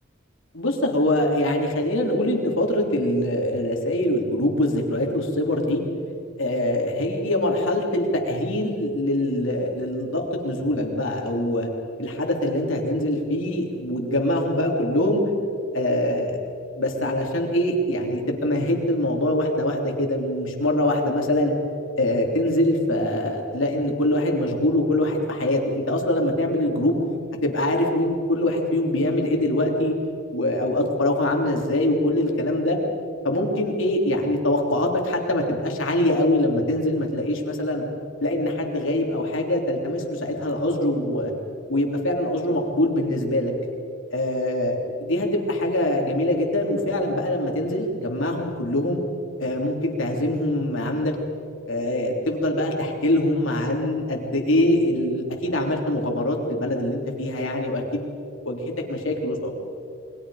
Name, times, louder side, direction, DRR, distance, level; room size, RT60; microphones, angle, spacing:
voice 1, 0.5-5.8 6.4-11.7 12.0-15.2 15.7-16.4 16.8-21.5 22.0-27.0 27.4-29.9 30.3-32.8 33.2-37.8 38.2-41.3 41.7-43.5 44.1-49.0 49.4-51.1 51.7-58.0 58.4-59.5, left 1 dB, 70° left, 1 dB, 3.4 m, -23 dB
28.5 x 22.5 x 5.0 m, 2.5 s
head